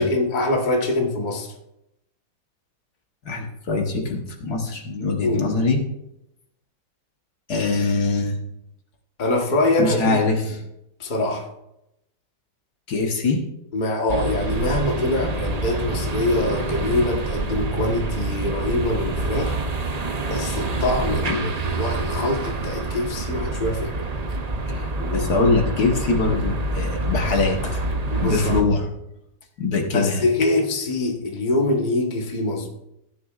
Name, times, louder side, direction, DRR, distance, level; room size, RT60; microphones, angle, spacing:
voice 1, 0.0-1.5 5.2-5.5 9.2-10.2 11.0-11.5 13.7-19.6 20.3-24.1 25.0-25.3 27.9-28.6 29.9-32.7, left 2 dB, 30° left, 1.4 m, -24 dB
voice 2, 3.3-5.8 7.5-8.4 9.8-10.6 12.9-13.4 21.3-21.5 24.7-27.8 28.2-28.9 29.6-30.2, left 3 dB, 65° left, 1.8 m, -23 dB
sound 1, 14.1-28.6, right 2 dB, 45° right, 0.5 m, -27 dB
16.0 x 10.5 x 2.5 m
omnidirectional pair, 1.9 m